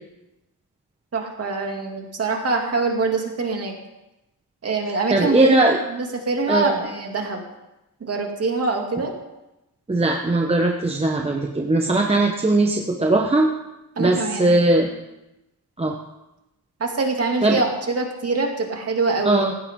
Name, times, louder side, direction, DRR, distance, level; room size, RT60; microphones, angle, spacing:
voice 1, 1.1-3.7 4.6-5.5 5.9-7.4 8.0-9.1 14.0-14.6 16.8-19.5, right 3 dB, 40° right, 1 dB, 2.6 m, -24 dB
voice 2, 5.1-5.8 6.5-6.7 9.9-13.5 14.0-14.9 15.8-16.0 17.4-17.6 19.2-19.6, right 2 dB, 15° right, 1 dB, 1.0 m, -19 dB
18.0 x 16.0 x 3.8 m, 0.95 s
wide cardioid pair, 155°, 38 cm